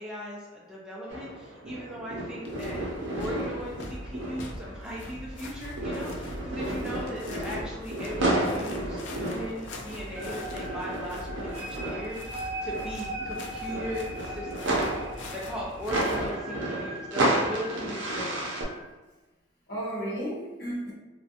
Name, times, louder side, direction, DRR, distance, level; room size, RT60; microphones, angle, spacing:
voice 1, 0.0-2.9 3.1-14.9 15.3-18.6, equal, 5° right, -5 dB, 0.3 m, -38 dB
sound 1, 1.1-5.5 5.8-18.6, right 1 dB, 75° right, 0.5 m, -32 dB
sound 2, 2.4-16.4, left 1 dB, 70° left, 0.4 m, -42 dB
voice 2, 6.6-7.1 12.5-12.6 15.0-15.1 15.8-16.1 16.4-16.6 17.7-17.8 19.7-20.9, right 1 dB, 55° left, -7 dB, 1.0 m, -36 dB
sound 3, 10.1-18.8, right 1 dB, 25° right, 0.7 m, -40 dB
2.4 x 2.1 x 2.7 m, 1.2 s
head